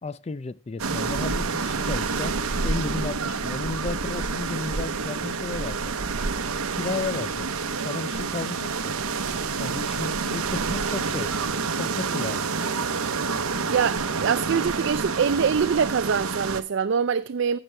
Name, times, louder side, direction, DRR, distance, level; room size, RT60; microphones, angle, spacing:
voice 1, 0.0-5.9 6.7-8.9 9.6-11.3 11.6-12.5, left 3 dB, 30° left, 0.4 m, -33 dB
sound 1, 0.8-16.6, right 4 dB, 85° right, 0.9 m, -28 dB
voice 2, 13.7-17.6, right 6 dB, 55° right, 0.4 m, -24 dB
15.5 x 6.1 x 3.3 m
head